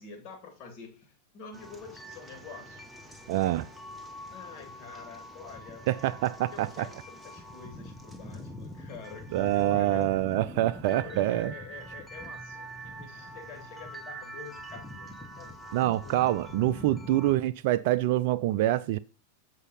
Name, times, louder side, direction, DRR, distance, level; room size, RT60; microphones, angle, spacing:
voice 1, 0.0-2.8 4.3-5.9 6.5-10.2 10.8-16.1, left 5 dB, 40° left, 2.4 m, -46 dB
sound 1, 1.5-17.4, equal, ahead, 1.0 m, -44 dB
voice 2, 3.3-3.7 5.9-6.9 9.3-11.5 15.7-19.0, right 14 dB, 50° right, 0.4 m, -26 dB
8.1 x 4.9 x 5.5 m
figure-of-eight pair, 90°, 0 cm